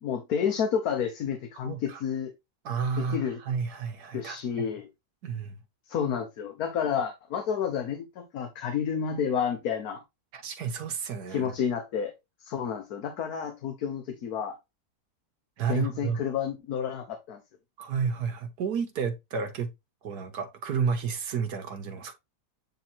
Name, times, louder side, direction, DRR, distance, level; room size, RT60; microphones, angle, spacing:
voice 1, 0.0-2.3 3.0-3.4 4.1-4.9 5.9-10.0 11.3-12.1 12.4-14.5 15.7-17.4, left 7 dB, 75° left, 1.4 m, -30 dB
voice 2, 1.6-2.0 2.6-4.7 5.2-5.6 10.3-11.5 15.6-16.2 17.8-19.7 20.0-22.1, right 6 dB, 85° right, 1.5 m, -31 dB
8.6 x 3.0 x 4.2 m
omnidirectional pair, 1.6 m